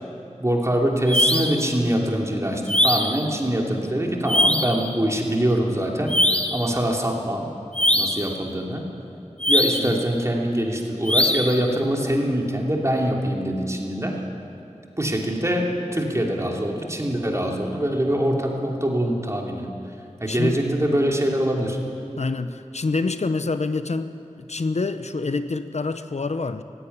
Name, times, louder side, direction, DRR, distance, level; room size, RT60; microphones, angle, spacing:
voice 1, 0.4-6.2 6.5-7.5 7.9-8.8 9.5-14.2 15.0-19.7 20.2-21.8, right 1 dB, 25° right, 0 dB, 3.0 m, -24 dB
sound 1, 1.1-1.6 2.7-3.2 4.3-4.8 6.1-6.7 7.7-8.3 9.4-10.0 11.1-11.6, left 1 dB, 10° left, 1.3 m, -21 dB
voice 2, 20.3-20.6 22.2-26.6, left 3 dB, 70° left, 10 dB, 0.7 m, -27 dB
17.0 x 15.5 x 9.9 m, 2.6 s
wide cardioid pair, 55°, 12 cm